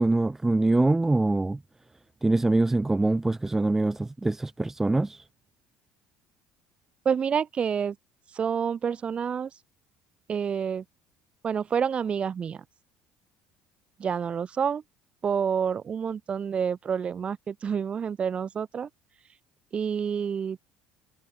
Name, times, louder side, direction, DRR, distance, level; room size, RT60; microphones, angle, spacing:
voice 1, 0.0-1.6 2.2-5.2, right 2 dB, 10° right, 1.5 m, -24 dB
voice 2, 7.0-8.0 8.3-9.5 10.3-10.8 11.4-12.6 14.0-14.8 15.2-18.9 19.7-20.6, right 7 dB, 35° right, 7.4 m, -28 dB
supercardioid pair, 110°, 3 cm